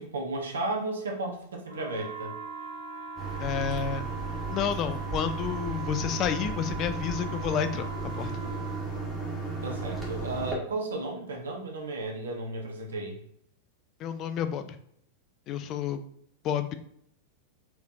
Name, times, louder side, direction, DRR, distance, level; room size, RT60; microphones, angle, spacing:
voice 1, 0.0-2.3 9.6-13.2, right 2 dB, 65° right, 1 dB, 1.0 m, -34 dB
sound 1, 1.7-8.9, right 4 dB, 85° right, 1.4 m, -40 dB
sound 2, 3.2-10.5, right 4 dB, 10° right, 1.5 m, -35 dB
voice 2, 3.4-4.0 4.5-7.9 8.2-8.3 14.0-14.8 15.5-16.0 16.4-16.7, left 8 dB, 35° left, 9 dB, 0.4 m, -30 dB
4.5 x 3.4 x 2.6 m, 0.68 s
figure-of-eight pair, 90°, 0 cm